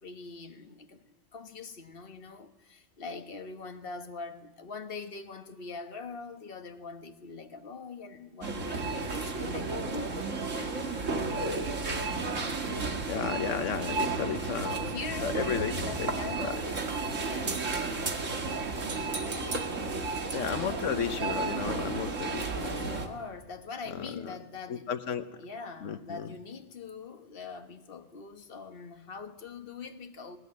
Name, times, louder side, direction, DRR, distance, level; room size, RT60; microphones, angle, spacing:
voice 1, 0.0-10.2 10.6-11.3 12.0-12.4 14.8-15.4 15.8-16.9 17.2-17.6 18.7-20.2 22.6-24.9 25.4-30.4, left 4 dB, 50° left, 1.5 m, -43 dB
sound 1, 8.4-23.1, right 3 dB, 85° right, 2.3 m, -32 dB
voice 2, 13.1-14.9 15.2-16.6 20.3-23.1 23.9-24.4 24.7-25.3 25.8-26.3, left 7 dB, 85° left, 1.3 m, -34 dB
19.5 x 19.0 x 9.6 m
omnidirectional pair, 1.3 m